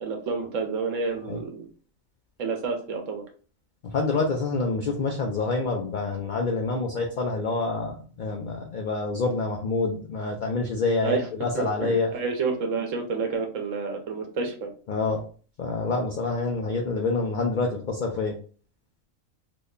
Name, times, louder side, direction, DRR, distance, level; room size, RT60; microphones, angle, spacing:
voice 1, 0.0-1.7 2.4-3.2 11.0-11.3 11.5-14.7, right 4 dB, 70° right, 2 dB, 1.1 m, -29 dB
voice 2, 3.8-12.1 14.9-15.2 15.6-18.4, left 3 dB, 70° left, 1 dB, 0.4 m, -27 dB
2.9 x 2.1 x 3.6 m, 0.40 s
omnidirectional pair, 1.4 m